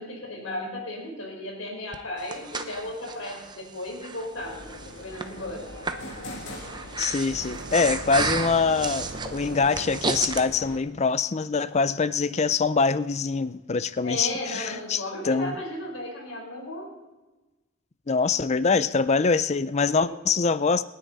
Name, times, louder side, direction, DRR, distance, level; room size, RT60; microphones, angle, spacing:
voice 1, 0.0-5.6 14.0-16.9 20.0-20.1, left 1 dB, 85° left, 4.1 m, -35 dB
Breathing, 1.9-10.4, right 4 dB, 20° right, 0.8 m, -33 dB
sound 1, 4.3-10.8, left 1 dB, 60° left, 2.6 m, -42 dB
voice 2, 7.0-15.6 18.1-20.8, left 4 dB, 35° left, 0.5 m, -24 dB
sound 2, 7.3-10.6, right 4 dB, 55° right, 0.6 m, -41 dB
26.5 x 9.7 x 4.1 m
head